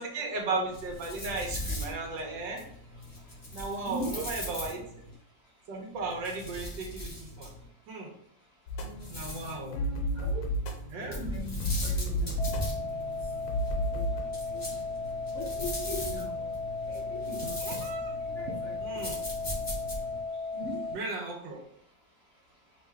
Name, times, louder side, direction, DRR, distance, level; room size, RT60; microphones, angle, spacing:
voice 1, 0.0-2.6 3.5-4.8 5.7-7.5 7.9-8.1 9.1-9.8 10.9-11.2 17.6-18.2 18.8-19.2 20.9-21.6, right 3 dB, 75° right, 1 dB, 1.7 m, -35 dB
sound 1, 0.7-5.1 6.0-7.7 8.8-9.6 11.1-20.2, left 1 dB, 25° left, 2.2 m, -39 dB
voice 2, 3.8-4.3 10.2-10.5 11.0-11.5 11.8-12.3 13.9-14.0 14.5-14.6 15.3-16.5 16.9-17.6 18.4-19.0 20.5-20.8, equal, 50° left, -3 dB, 0.8 m, -39 dB
sound 2, 8.7-14.2, equal, 80° left, 1.5 m, -33 dB
sound 3, 12.4-21.0, left 3 dB, 50° right, 0.9 m, -35 dB
5.5 x 2.7 x 3.4 m, 0.68 s
omnidirectional pair, 2.0 m